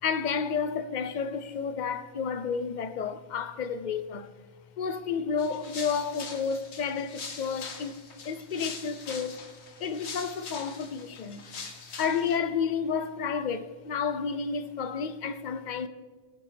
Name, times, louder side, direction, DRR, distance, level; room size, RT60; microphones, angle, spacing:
voice 1, 0.0-4.3 4.8-9.4 9.8-11.4 12.0-15.9, left 6 dB, 50° left, 0.7 m, -31 dB
sound 1, 5.4-12.4, left 5 dB, 90° left, 1.3 m, -42 dB
18.5 x 8.8 x 3.4 m
omnidirectional pair, 1.1 m